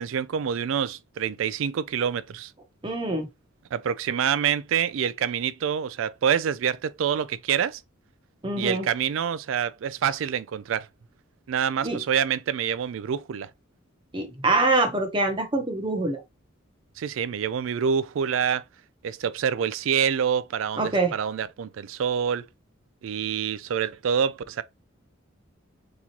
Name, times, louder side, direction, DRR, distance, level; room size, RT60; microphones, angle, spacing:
voice 1, 0.0-2.5 3.7-7.8 8.6-10.9 11.5-13.5 17.0-18.6 19.0-22.5 23.0-24.6, right 8 dB, 75° right, 0.4 m, -26 dB
voice 2, 2.8-3.3 8.4-8.9 11.8-12.0 14.1-16.2 20.8-21.1, right 2 dB, 25° right, 0.9 m, -24 dB
3.7 x 3.0 x 2.8 m
head